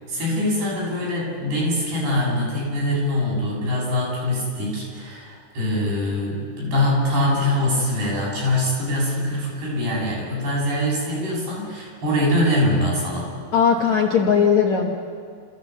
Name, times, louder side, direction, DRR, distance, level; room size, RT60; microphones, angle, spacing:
voice 1, 0.1-13.3, left 1 dB, 60° right, -5 dB, 9.4 m, -23 dB
voice 2, 13.5-15.0, left 6 dB, 65° left, 0 dB, 1.9 m, -18 dB
29.0 x 15.5 x 8.4 m, 2.1 s
omnidirectional pair, 5.2 m